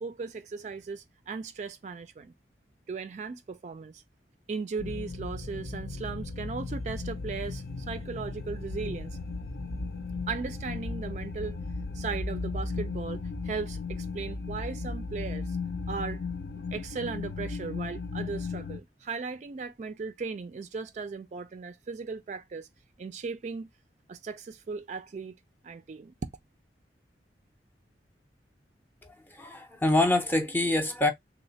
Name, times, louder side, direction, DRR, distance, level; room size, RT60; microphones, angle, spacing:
voice 1, 0.0-2.3 2.9-4.0 4.5-9.2 10.3-11.6 11.9-15.6 15.9-16.2 16.7-22.7 23.0-23.7 24.1-25.3 25.6-26.1, right 5 dB, 40° right, 0.3 m, -37 dB
sound 1, 4.8-18.8, left 3 dB, 60° left, 0.5 m, -36 dB
voice 2, 29.0-31.1, left 2 dB, 10° left, 0.5 m, -26 dB
3.1 x 2.0 x 3.9 m
head